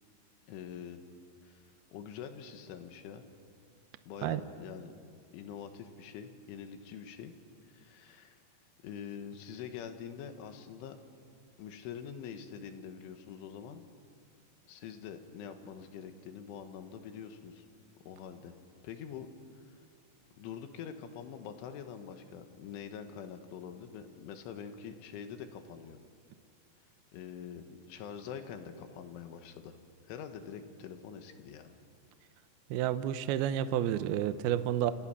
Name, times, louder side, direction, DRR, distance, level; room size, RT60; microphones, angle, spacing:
voice 1, 0.5-1.0 1.4-1.6 1.9-3.3 4.1-4.9 5.3-7.3 7.7-8.4 8.8-11.0 11.6-13.8 14.7-17.7 18.1-18.5 18.8-19.3 19.6-19.8 20.4-26.0 27.1-29.8 30.1-31.8, left 7 dB, 80° left, 7 dB, 3.9 m, -45 dB
voice 2, 32.7-34.9, right 11 dB, 85° right, 11 dB, 2.2 m, -30 dB
29.0 x 28.0 x 6.1 m, 2.3 s
omnidirectional pair, 5.7 m